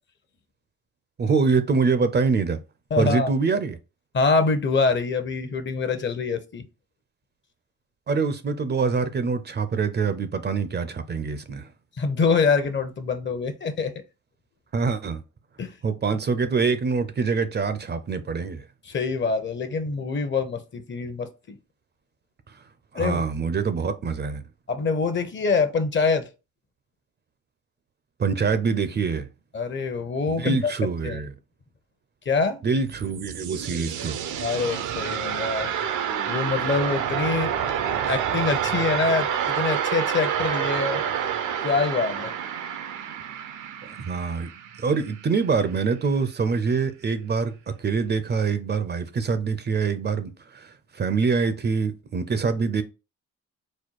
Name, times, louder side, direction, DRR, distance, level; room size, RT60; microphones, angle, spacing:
voice 1, 1.2-2.6 3.0-3.8 8.1-11.7 14.7-15.2 15.8-18.6 22.5-22.6 22.9-24.4 28.2-29.3 30.3-31.3 32.6-34.2 43.9-44.5 44.8-52.8, right 5 dB, 35° right, 0.5 m, -25 dB
voice 2, 2.9-3.3 4.1-6.6 12.0-13.9 15.6-15.7 18.9-21.6 22.9-23.2 24.7-26.3 29.5-30.7 31.0-31.2 32.3-32.6 34.4-35.7 36.3-37.5 37.9-41.0 41.6-42.3, left 4 dB, 40° left, 0.8 m, -25 dB
sound 1, 32.7-45.5, right 8 dB, 80° right, 0.7 m, -28 dB
4.2 x 2.3 x 4.6 m
cardioid pair, 90°, 30 cm